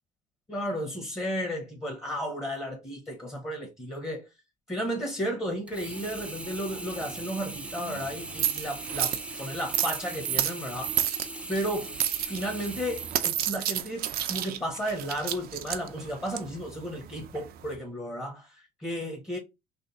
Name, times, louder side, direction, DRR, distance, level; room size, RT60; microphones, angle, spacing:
voice 1, 0.5-4.3 4.7-11.0 11.5-11.9 12.2-19.4, equal, 15° left, 1.1 m, -33 dB
Sink (filling or washing), 5.7-13.9 14.5-14.6, right 2 dB, 5° right, 0.5 m, -40 dB
sound 1, 5.7-17.8, right 11 dB, 65° right, 0.6 m, -33 dB
3.4 x 2.5 x 3.9 m
cardioid pair, 110°, 17 cm